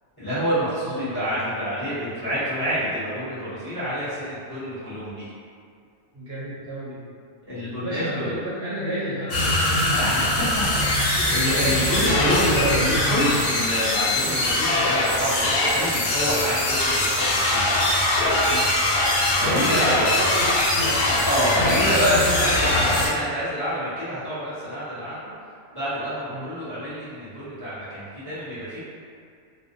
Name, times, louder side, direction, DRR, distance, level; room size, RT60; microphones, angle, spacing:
voice 1, 0.2-5.3 7.5-8.3 9.9-10.2 10.7-17.6 19.3-20.0 20.8-20.9 21.2-25.2 25.7-28.8, equal, 25° left, -13 dB, 0.5 m, -27 dB
voice 2, 6.1-7.0 7.8-10.4 11.2-12.6 14.2-14.4 18.5-18.7 19.4-22.6 26.3-26.5, equal, 65° right, -10 dB, 0.7 m, -32 dB
sound 1, 9.3-23.1, left 1 dB, 75° left, 0.9 m, -22 dB
2.5 x 2.0 x 2.5 m, 2.3 s
omnidirectional pair, 1.4 m